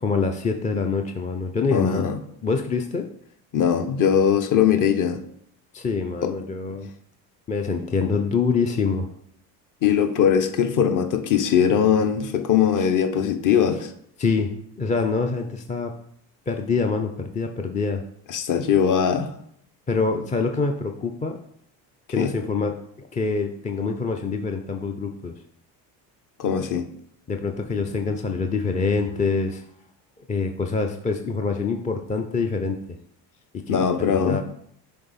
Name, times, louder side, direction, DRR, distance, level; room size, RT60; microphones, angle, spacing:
voice 1, 0.0-2.1 2.4-3.1 5.7-6.9 7.5-9.1 12.8-12.9 14.2-15.9 16.5-18.0 19.9-21.4 22.1-25.3 27.3-29.6 30.3-32.8 33.5-34.4, left 4 dB, 15° left, 4 dB, 0.4 m, -25 dB
voice 2, 1.7-2.2 3.5-5.2 6.2-6.3 9.8-13.9 18.3-19.3 22.2-22.3 26.4-26.9 33.7-34.4, left 8 dB, 40° left, 9 dB, 0.8 m, -21 dB
6.6 x 3.5 x 4.1 m, 0.68 s
hypercardioid pair, 70°, 49 cm